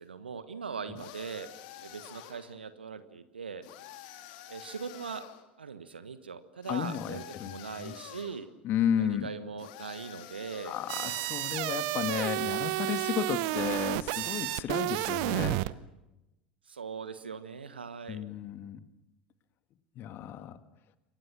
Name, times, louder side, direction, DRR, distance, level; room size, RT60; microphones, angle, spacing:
voice 1, 0.0-1.5 1.8-3.6 4.5-5.2 5.6-8.5 9.0-10.8 16.7-18.2, right 5 dB, 80° right, 12 dB, 1.4 m, -40 dB
sound 1, 1.0-2.5 3.6-5.4 6.6-8.4 9.6-11.4, left 12 dB, 60° left, 2.8 m, -48 dB
voice 2, 6.7-7.9 8.6-9.3 10.6-15.6 18.1-18.8 20.0-20.6, left 10 dB, 45° left, 10 dB, 1.9 m, -33 dB
sound 2, 10.9-15.7, right 19 dB, 55° right, 0.9 m, -31 dB
28.0 x 24.0 x 6.1 m, 0.96 s
figure-of-eight pair, 75°, 5 cm